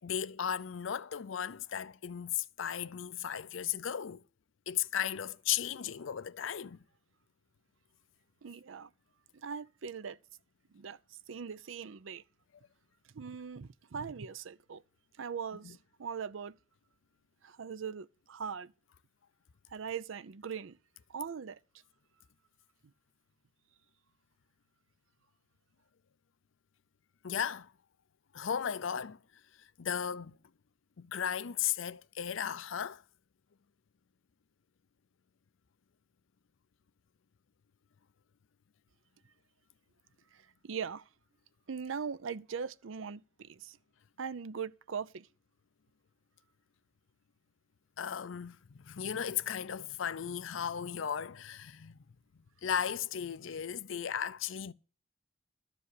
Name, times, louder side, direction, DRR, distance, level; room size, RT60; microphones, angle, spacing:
voice 1, 0.0-4.2 4.7-6.8 27.2-27.7 28.3-29.2 29.8-30.4 31.0-33.0 48.0-52.0 52.6-54.7, left 8 dB, 70° left, 0.5 m, -35 dB
voice 2, 8.4-8.9 9.3-10.2 10.7-12.2 13.1-14.8 15.2-16.6 17.4-18.7 19.7-20.8 21.1-21.6 40.3-41.1 41.7-43.8 44.2-45.3, right 6 dB, 75° right, 0.5 m, -41 dB
13.0 x 5.0 x 8.3 m
head